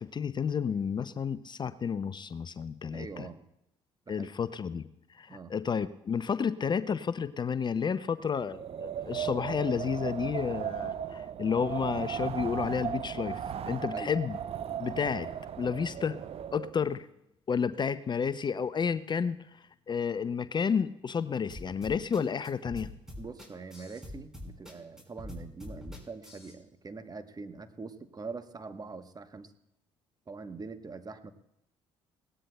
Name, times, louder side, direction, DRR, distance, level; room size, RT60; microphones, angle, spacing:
voice 1, 0.0-3.3 4.1-14.4 14.8-15.3 15.6-16.2 16.5-17.1 17.5-22.9, left 6 dB, 35° left, 15 dB, 0.5 m, -31 dB
voice 2, 2.9-3.5 4.1-4.3 5.3-5.5 13.9-14.1 23.2-29.5 30.3-31.3, right 4 dB, 30° right, 10 dB, 1.1 m, -43 dB
Wind, 8.4-16.9, right 9 dB, 50° right, 0.7 m, -36 dB
sound 1, 21.5-26.5, left 1 dB, 5° right, 4.8 m, -44 dB
21.0 x 17.5 x 2.2 m, 0.81 s
hypercardioid pair, 50°, 13 cm